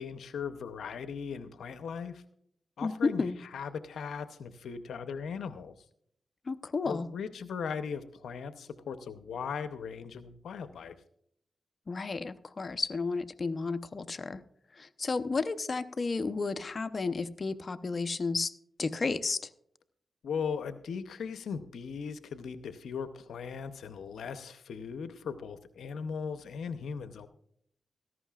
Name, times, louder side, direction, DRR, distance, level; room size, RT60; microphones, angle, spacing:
voice 1, 0.0-2.2 2.8-5.7 6.8-10.9 20.2-27.3, left 6 dB, 90° left, 10 dB, 0.7 m, -38 dB
voice 2, 2.8-3.4 6.5-7.1 11.9-14.4 14.8-18.5 18.8-19.5, left 4 dB, 50° left, 11 dB, 0.8 m, -32 dB
17.0 x 14.5 x 2.4 m, 0.66 s
cardioid pair, 55°, 0 cm